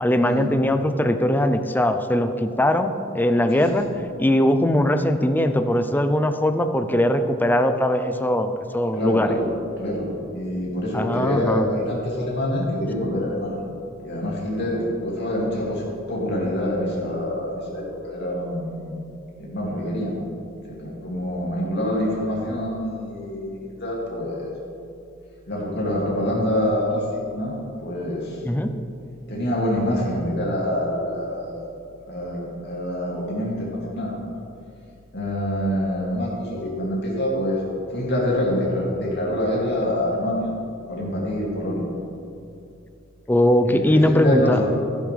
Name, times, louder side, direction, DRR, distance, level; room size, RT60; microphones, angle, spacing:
voice 1, 0.0-3.9 4.2-9.3 10.9-11.7 28.4-28.8 43.3-44.6, left 1 dB, 10° left, 9 dB, 0.5 m, -20 dB
voice 2, 8.9-9.5 9.8-13.6 14.0-19.0 19.4-20.2 20.6-24.5 25.5-27.5 27.8-28.4 29.3-31.7 32.1-34.1 35.1-37.6 37.9-40.5 40.9-41.9 43.7-44.7, left 1 dB, 60° left, -4 dB, 2.6 m, -26 dB
12.5 x 10.5 x 3.4 m, 2.6 s
head